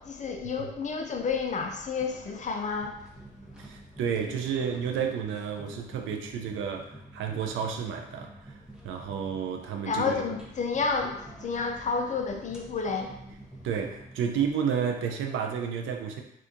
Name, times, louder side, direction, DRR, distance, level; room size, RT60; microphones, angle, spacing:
voice 1, 0.0-3.1 9.8-13.2, left 5 dB, 40° left, 3 dB, 0.5 m, -30 dB
sound 1, 1.9-14.2, right 1 dB, 5° right, 0.7 m, -49 dB
voice 2, 3.6-10.2 13.6-16.2, right 7 dB, 80° right, 4 dB, 0.5 m, -31 dB
2.8 x 2.4 x 3.6 m, 0.79 s
cardioid pair, 90°, 20 cm